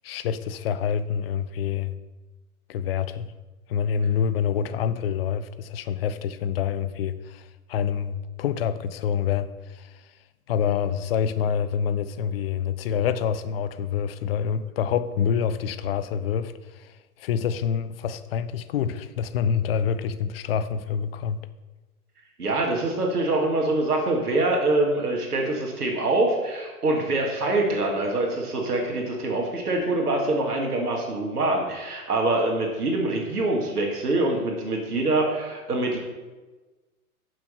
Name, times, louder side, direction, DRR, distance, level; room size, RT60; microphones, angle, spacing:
voice 1, 0.0-1.9 2.7-3.3 3.7-9.9 10.5-16.9 17.2-21.4, left 7 dB, 40° left, 0.5 m, -27 dB
voice 2, 22.4-36.0, right 2 dB, 85° right, 1.8 m, -24 dB
6.2 x 6.2 x 5.5 m
hypercardioid pair, 120°, 45 cm